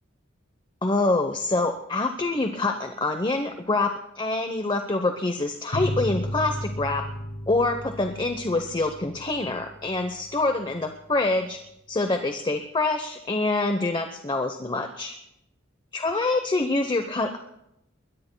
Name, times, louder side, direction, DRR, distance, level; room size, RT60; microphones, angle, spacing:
voice 1, 0.8-7.1 7.5-11.6 11.9-15.2 15.9-17.4, left 2 dB, 25° left, 6 dB, 0.9 m, -26 dB
sound 1, 5.7-10.9, equal, 85° left, 2.2 m, -34 dB
30.0 x 21.5 x 2.3 m, 0.84 s
head